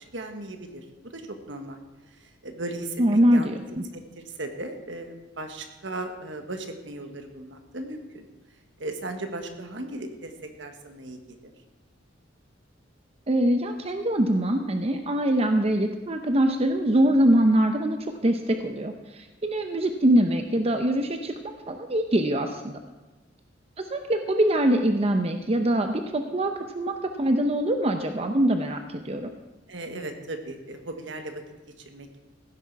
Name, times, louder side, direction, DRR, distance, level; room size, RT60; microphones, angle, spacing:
voice 1, 0.0-1.8 2.2-3.6 3.9-8.3 8.8-10.3 10.6-11.5 29.7-31.4 31.8-32.2, right 2 dB, 70° right, 6 dB, 1.4 m, -37 dB
voice 2, 3.0-3.8 13.3-22.8 23.8-29.3, right 1 dB, 35° right, 6 dB, 0.7 m, -23 dB
16.0 x 9.9 x 4.7 m, 1.2 s
head